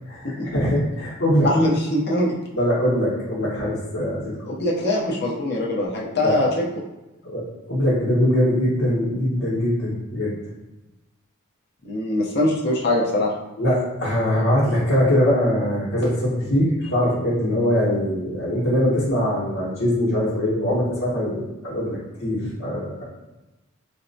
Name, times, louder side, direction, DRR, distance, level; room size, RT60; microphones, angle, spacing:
voice 1, 0.1-1.5 2.5-4.4 6.2-6.4 7.2-10.3 13.6-23.0, equal, 85° left, -11 dB, 1.0 m, -22 dB
voice 2, 1.4-2.3 4.5-6.6 11.8-13.3, left 1 dB, 50° left, -3 dB, 0.7 m, -22 dB
4.2 x 2.1 x 2.6 m, 1.0 s
head